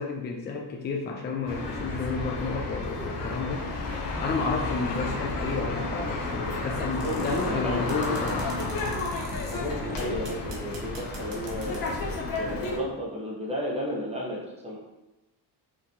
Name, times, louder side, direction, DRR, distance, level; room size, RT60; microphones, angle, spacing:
voice 1, 0.0-3.7 4.2-8.5, left 4 dB, 25° left, 0 dB, 0.4 m, -31 dB
sound 1, 1.5-12.8, left 2 dB, 50° left, 1.0 m, -32 dB
voice 2, 6.9-8.3 9.5-14.8, equal, 15° right, -4 dB, 1.1 m, -34 dB
sound 2, 7.0-7.5 7.9-9.6 10.0-12.0, right 3 dB, 85° right, 1.5 m, -45 dB
5.7 x 3.1 x 2.9 m, 1.0 s
cardioid pair, 150°, 42 cm